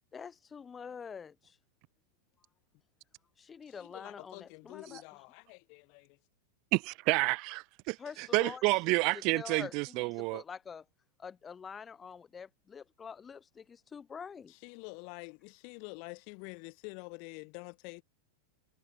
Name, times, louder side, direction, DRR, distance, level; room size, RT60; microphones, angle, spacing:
voice 1, 0.1-1.6 3.4-5.0 8.0-8.6 9.1-10.8 11.2-14.5, left 6 dB, 20° left, 4.9 m, -46 dB
voice 2, 3.7-6.2 14.5-18.0, left 40 dB or more, 55° left, 5.1 m, -47 dB
voice 3, 6.7-10.4, right 27 dB, 50° right, 0.7 m, -30 dB
hypercardioid pair, 110°, 0 cm